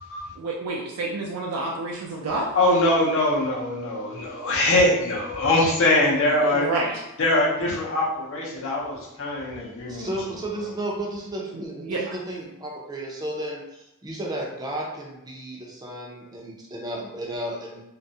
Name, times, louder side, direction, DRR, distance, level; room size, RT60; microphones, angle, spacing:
voice 1, 0.4-2.5 6.4-6.9 11.5-12.1, right 2 dB, 80° right, -2 dB, 0.4 m, -29 dB
voice 2, 2.5-6.7 7.2-10.1, left 1 dB, 60° left, -3 dB, 0.6 m, -22 dB
voice 3, 9.9-17.8, right 1 dB, 15° right, -2 dB, 0.4 m, -33 dB
2.3 x 2.0 x 2.6 m, 0.89 s
head